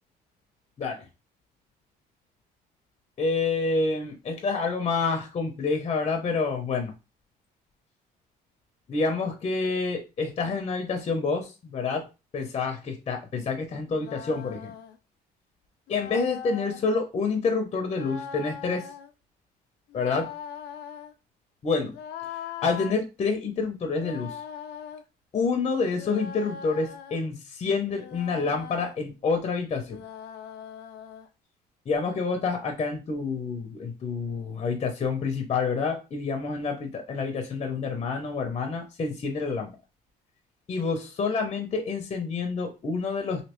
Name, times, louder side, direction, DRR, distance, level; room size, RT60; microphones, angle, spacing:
voice 1, 3.2-6.9 8.9-12.1 12.3-14.7 15.9-18.9 19.9-20.3 21.6-21.9 22.6-24.4 25.3-30.0 31.9-39.7 40.7-43.4, left 4 dB, 35° left, 4 dB, 0.7 m, -28 dB
sound 1, 13.9-15.0 15.9-16.8 17.9-19.1 19.9-21.1 21.9-23.0 23.9-25.0 25.9-27.3 27.9-29.0 29.9-31.3, left 8 dB, 80° left, 0.5 m, -40 dB
3.1 x 2.8 x 3.0 m, 0.29 s
cardioid pair, 110°, 17 cm